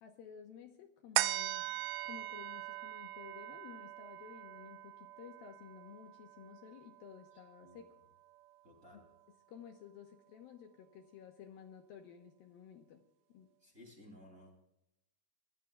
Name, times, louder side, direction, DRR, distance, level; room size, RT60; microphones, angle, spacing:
voice 1, 0.0-1.7 2.0-7.9 8.9-9.0 9.5-13.0 13.3-13.5, left 8 dB, 70° left, 4 dB, 2.5 m, -53 dB
sound 1, 1.2-7.9 8.4-8.5, right 16 dB, 85° right, 2.7 m, -40 dB
voice 2, 8.6-9.1 13.6-14.6, left 1 dB, 20° right, 0 dB, 2.8 m, -57 dB
26.5 x 17.0 x 2.3 m, 0.87 s
omnidirectional pair, 4.9 m